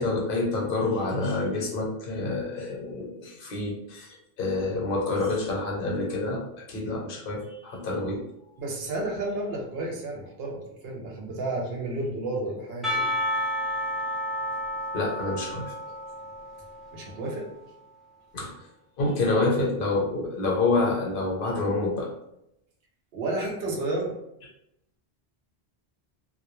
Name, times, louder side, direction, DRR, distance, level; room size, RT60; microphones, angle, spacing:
voice 1, 0.0-4.1 4.4-8.2 14.9-15.7 18.3-18.5 19.0-22.1, left 3 dB, 65° left, -2 dB, 0.8 m, -27 dB
voice 2, 8.6-13.0 16.9-17.5 19.3-19.7 23.1-24.1, right 2 dB, 75° right, -1 dB, 0.8 m, -31 dB
Percussion / Church bell, 12.8-17.4, left 1 dB, ahead, 0.3 m, -31 dB
2.2 x 2.0 x 2.9 m, 0.82 s
omnidirectional pair, 1.0 m